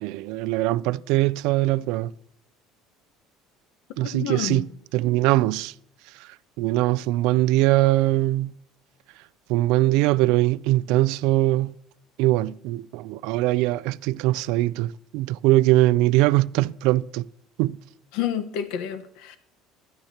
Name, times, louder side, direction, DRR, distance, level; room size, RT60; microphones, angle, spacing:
voice 1, 0.0-2.1 4.0-4.7 4.9-5.7 6.6-8.5 9.5-11.7 12.2-17.3 17.6-17.8, right 17 dB, 65° right, 0.3 m, -21 dB
voice 2, 4.1-4.7 18.1-19.4, left 10 dB, 70° left, 1.2 m, -29 dB
16.0 x 11.5 x 2.9 m
cardioid pair, 175°, 0 cm